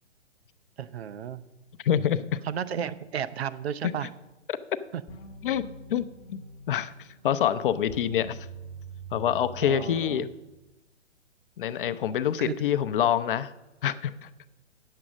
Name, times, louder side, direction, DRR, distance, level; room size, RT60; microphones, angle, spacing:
voice 1, 0.8-1.4 2.4-4.1 4.9-5.0 9.6-10.3 12.4-12.6, right 9 dB, 60° right, 13 dB, 0.7 m, -33 dB
voice 2, 1.8-2.4 3.8-3.9 4.5-4.6 5.4-5.6 5.9-6.4 6.7-8.5 9.1-10.3 11.6-13.5 13.8-14.3, left 10 dB, 45° left, 12 dB, 0.6 m, -26 dB
sound 1, 5.1-10.7, right 3 dB, 25° left, 0.9 m, -45 dB
8.6 x 7.5 x 6.2 m, 1.0 s
figure-of-eight pair, 125°, 36 cm